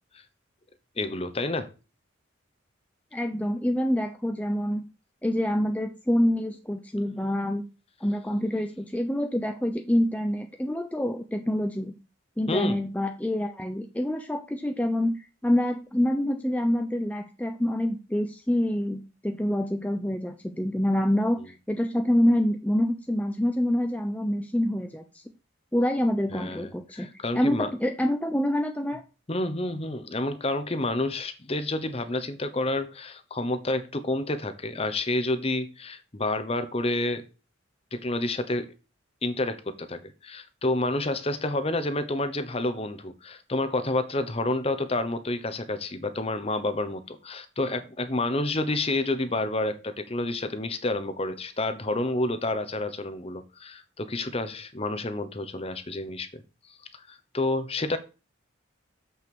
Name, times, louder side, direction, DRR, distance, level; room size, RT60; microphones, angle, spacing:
voice 1, 1.0-1.7 12.5-12.8 26.3-27.7 29.3-37.2 37.9-38.7 39.2-56.4 56.9-58.0, left 2 dB, 30° left, 10 dB, 0.9 m, -29 dB
voice 2, 3.1-4.9 5.2-7.6 8.0-11.9 12.4-25.2 25.7-27.1 27.3-29.0, left 1 dB, 5° left, 5 dB, 0.6 m, -26 dB
7.3 x 5.9 x 6.1 m, 0.32 s
head